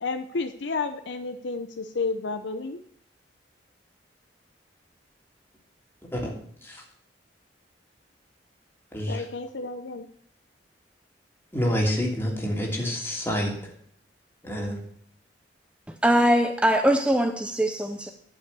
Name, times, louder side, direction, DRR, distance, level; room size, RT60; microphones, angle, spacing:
voice 1, 0.0-2.8 9.1-10.1, left 4 dB, 80° left, 8 dB, 0.7 m, -31 dB
voice 2, 8.9-9.2 11.5-13.7 14.4-14.8, equal, 15° left, -1 dB, 2.9 m, -28 dB
voice 3, 16.0-18.1, equal, 5° right, 6 dB, 0.7 m, -22 dB
11.5 x 5.7 x 8.2 m, 0.64 s
head